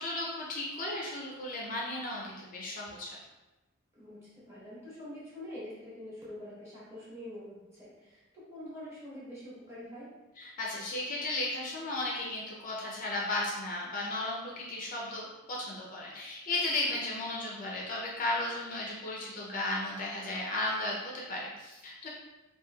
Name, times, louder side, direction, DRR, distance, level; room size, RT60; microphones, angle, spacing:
voice 1, 0.0-3.2 10.4-22.1, left 2 dB, 40° left, -3 dB, 0.4 m, -35 dB
voice 2, 3.9-10.1 16.9-17.0, left 1 dB, 15° right, -10 dB, 1.2 m, -45 dB
3.0 x 2.7 x 2.2 m, 1.1 s
head